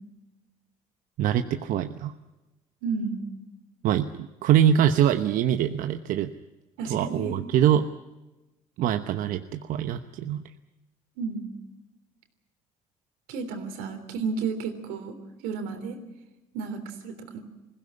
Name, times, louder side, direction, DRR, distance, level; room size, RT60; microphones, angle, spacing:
voice 1, 1.2-2.1 3.8-6.3 6.9-7.9 8.8-10.4, right 10 dB, 70° right, 8 dB, 1.0 m, -24 dB
voice 2, 2.8-3.3 6.8-7.3 11.2-11.5 13.3-15.2 15.4-16.0 16.5-17.4, right 5 dB, 90° right, 7 dB, 3.4 m, -32 dB
21.0 x 16.0 x 9.8 m, 1.1 s
supercardioid pair, 90°, 15 cm